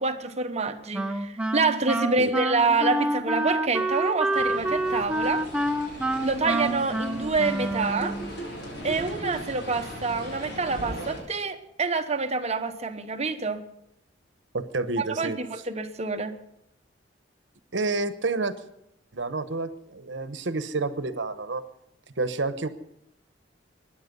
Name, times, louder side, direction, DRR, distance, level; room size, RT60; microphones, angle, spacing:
voice 1, 0.0-5.5 6.2-8.2 8.8-13.6 15.0-16.3, right 4 dB, 35° right, 7 dB, 1.1 m, -27 dB
Wind instrument woodwind instrument, 0.9-8.3, right 1 dB, 5° right, 0.7 m, -28 dB
sound 1, 4.3-11.2, right 1 dB, 65° left, 6.1 m, -38 dB
voice 2, 14.5-15.4 17.7-18.5 19.1-21.6 22.2-22.7, right 3 dB, 75° right, 11 dB, 1.0 m, -29 dB
22.0 x 10.5 x 5.4 m, 0.82 s
head